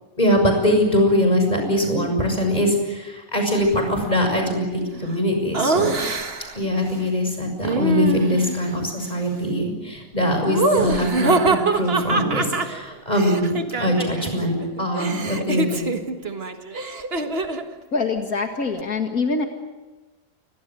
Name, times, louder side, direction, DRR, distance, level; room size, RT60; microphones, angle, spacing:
voice 1, 0.2-5.9 6.5-15.9, equal, 30° left, 4 dB, 7.0 m, -22 dB
Laughter, 5.5-6.6 7.6-8.7 10.4-14.3 14.6-17.7, right 3 dB, 45° right, 1.8 m, -24 dB
voice 2, 17.9-19.5, left 4 dB, 80° left, 4 dB, 2.4 m, -24 dB
28.5 x 23.5 x 7.7 m, 1.2 s
omnidirectional pair, 1.5 m